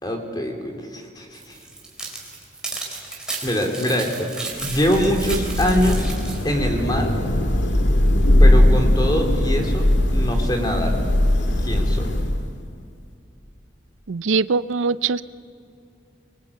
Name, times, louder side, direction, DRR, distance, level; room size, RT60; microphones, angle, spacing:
voice 1, 0.0-1.5 3.4-4.3 4.6-6.1 6.4-7.2 8.4-9.9 10.1-11.0 11.6-12.1, equal, 20° left, 3 dB, 3.0 m, -23 dB
sound 1, 1.3-6.4, right 3 dB, 5° right, 3.8 m, -33 dB
Thunder / Rain, 4.6-12.6, left 1 dB, 70° left, 1.9 m, -19 dB
voice 2, 14.1-15.2, right 4 dB, 85° right, 16 dB, 0.5 m, -22 dB
24.0 x 24.0 x 8.5 m, 2.6 s
head